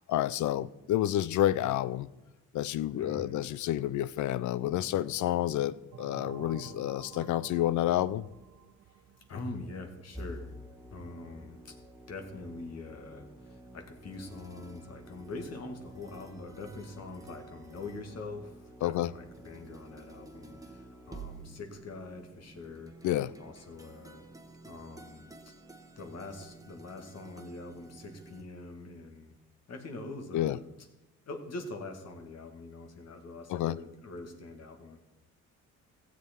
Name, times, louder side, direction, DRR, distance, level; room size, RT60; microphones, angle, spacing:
voice 1, 0.0-2.1 2.5-8.3 18.8-19.1 23.0-23.3 30.3-30.6 33.5-33.8, left 13 dB, 75° left, 0.5 m, -29 dB
voice 2, 2.9-3.5 9.3-10.6 10.9-11.8 12.1-23.0 23.4-24.2 24.6-25.5 26.0-29.3 29.7-30.6 31.3-35.0, left 3 dB, 55° left, 2.0 m, -44 dB
sound 1, 5.9-10.3, right 9 dB, 70° right, 0.8 m, -50 dB
sound 2, 10.1-28.4, right 1 dB, 10° right, 1.2 m, -50 dB
15.5 x 7.6 x 4.5 m
cardioid pair, 90°, 30 cm